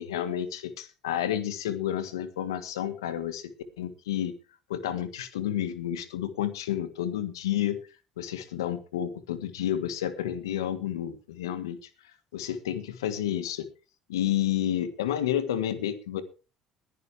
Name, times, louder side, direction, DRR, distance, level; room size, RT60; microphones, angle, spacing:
voice 1, 0.0-3.5 3.8-4.3 4.7-7.8 8.2-11.9 12.3-13.7 14.1-16.2, left 11 dB, 85° left, 13 dB, 1.5 m, -30 dB
21.0 x 10.5 x 3.4 m, 0.33 s
hypercardioid pair, 60°, 2 cm